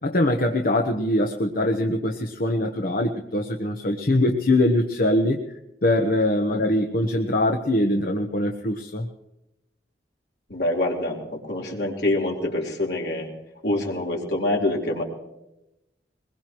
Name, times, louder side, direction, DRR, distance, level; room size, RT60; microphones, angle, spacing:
voice 1, 0.0-5.4 5.8-9.1, left 1 dB, 55° left, 3 dB, 1.1 m, -22 dB
voice 2, 10.5-13.3 13.6-15.0, left 1 dB, 75° left, -2 dB, 3.8 m, -26 dB
22.0 x 21.0 x 3.1 m, 0.91 s
head